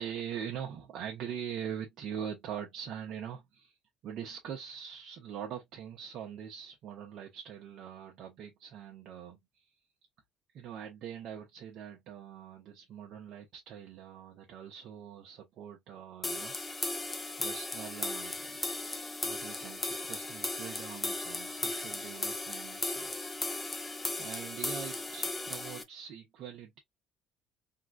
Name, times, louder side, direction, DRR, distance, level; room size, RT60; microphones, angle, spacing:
voice 1, 0.0-3.8 4.0-9.7 10.5-16.6 17.4-18.6 19.2-23.7 24.2-26.8, right 8 dB, 65° right, 0.8 m, -43 dB
sound 1, 16.2-25.8, left 2 dB, 20° left, 0.8 m, -36 dB
3.7 x 2.3 x 2.3 m
supercardioid pair, 80°, 0 cm